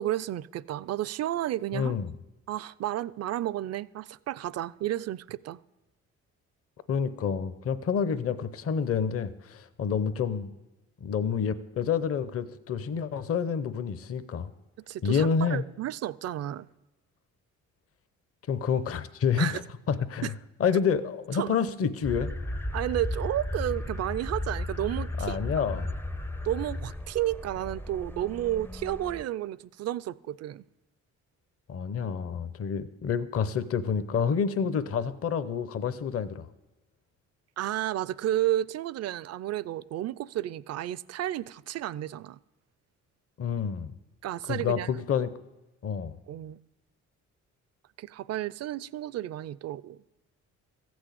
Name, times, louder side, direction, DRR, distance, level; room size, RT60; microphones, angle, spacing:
voice 1, 0.0-1.9 2.5-5.6 14.9-16.7 19.4-19.6 20.2-20.3 21.3-21.6 22.7-25.4 26.4-30.6 37.6-42.4 44.2-44.9 46.3-46.6 48.0-50.0, right 13 dB, 55° right, 0.4 m, -32 dB
voice 2, 1.7-2.1 6.9-10.5 11.0-14.5 15.0-15.6 18.5-19.6 19.9-20.3 20.6-22.3 25.2-25.9 31.7-36.5 43.4-43.9 44.5-45.3 45.8-46.1, left 6 dB, 50° left, 0.8 m, -28 dB
sound 1, 22.0-29.2, left 1 dB, 5° left, 0.4 m, -35 dB
14.5 x 6.2 x 8.4 m
cardioid pair, 90°, 30 cm